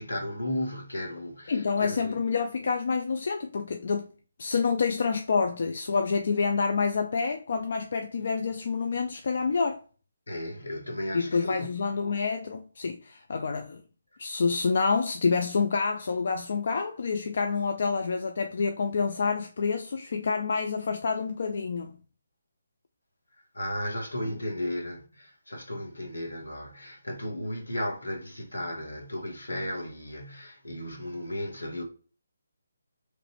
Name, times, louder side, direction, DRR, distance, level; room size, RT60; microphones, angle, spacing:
voice 1, 0.0-2.1 10.3-11.7 23.5-31.8, left 1 dB, 75° left, 1.1 m, -34 dB
voice 2, 1.5-4.1 4.4-9.8 11.1-13.8 14.2-22.0 24.2-24.4, left 5 dB, 50° left, 0.3 m, -28 dB
3.1 x 2.5 x 3.0 m
figure-of-eight pair, 145°, 0 cm